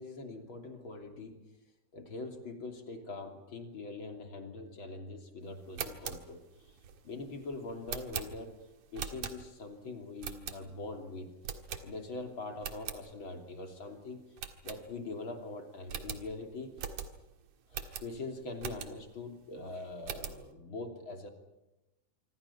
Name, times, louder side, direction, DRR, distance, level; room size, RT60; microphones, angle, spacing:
voice 1, 0.0-1.4 1.9-6.4 7.0-8.5 8.9-11.3 11.8-14.2 14.6-16.7 17.7-21.3, left 3 dB, 40° left, 4 dB, 3.5 m, -43 dB
sound 1, 5.6-9.7 10.2-11.0 11.4-12.2 12.5-13.0 13.5-13.6 13.8-13.9 14.4-15.3 15.5-15.6 15.9-19.2 19.6-20.5, right 8 dB, 65° right, 3.0 m, -42 dB
26.5 x 25.5 x 5.8 m, 0.97 s
omnidirectional pair, 3.7 m